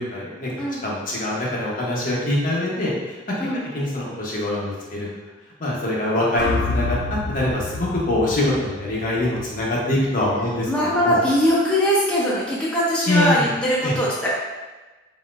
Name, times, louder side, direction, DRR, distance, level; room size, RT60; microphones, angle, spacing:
voice 1, 0.0-0.5 0.8-3.3 3.7-5.1 5.6-7.0 7.3-10.7 11.0-11.2 13.1-13.5 13.8-13.9, left 1 dB, 50° left, -5 dB, 1.0 m, -24 dB
sound 1, 6.4-10.6, left 2 dB, 80° left, 0.4 m, -29 dB
voice 2, 10.7-14.3, equal, 5° left, -8 dB, 0.7 m, -21 dB
4.2 x 4.1 x 2.5 m, 1.2 s
head